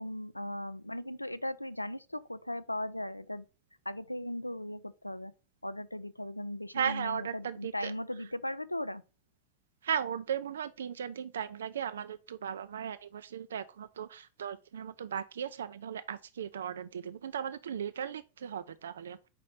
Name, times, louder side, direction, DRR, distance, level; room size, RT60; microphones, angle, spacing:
voice 1, 0.0-3.4 3.9-5.3 5.6-9.0, left 1 dB, 85° left, 0.3 m, -38 dB
voice 2, 6.7-7.9 9.8-19.2, right 8 dB, 65° right, 0.3 m, -36 dB
5.1 x 4.1 x 5.6 m
figure-of-eight pair, 90°, 0 cm